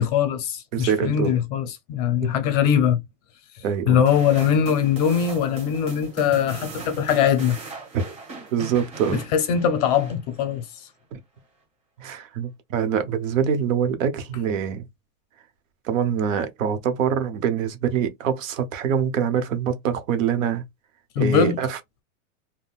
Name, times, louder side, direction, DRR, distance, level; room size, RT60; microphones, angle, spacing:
voice 1, 0.0-3.0 3.9-7.6 9.1-10.6 21.2-21.6, left 8 dB, 30° left, 0.5 m, -21 dB
voice 2, 0.7-1.3 2.2-2.3 3.6-4.0 7.9-8.1 8.5-9.2 11.1-11.2 12.0-14.9 15.8-20.6 21.2-22.0, right 8 dB, 80° right, 1.1 m, -24 dB
sound 1, 4.1-10.6, right 3 dB, 15° right, 1.2 m, -39 dB
3.7 x 2.2 x 2.4 m
supercardioid pair, 165°, 39 cm